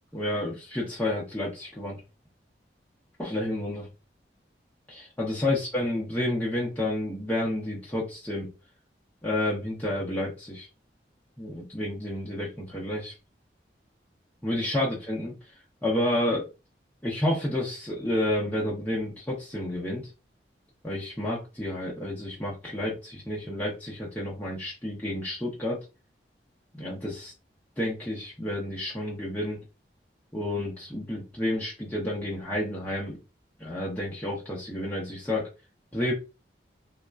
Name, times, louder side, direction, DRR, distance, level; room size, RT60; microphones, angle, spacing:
voice 1, 0.1-2.0 3.2-3.9 4.9-8.5 9.2-10.7 11.4-13.1 14.4-15.3 15.8-16.5 17.0-20.1 20.8-25.8 26.7-27.3 27.8-29.6 30.3-33.2 33.6-35.5 35.9-36.1, left 1 dB, 10° left, -6 dB, 0.7 m, -30 dB
3.5 x 2.1 x 2.3 m, 0.28 s
head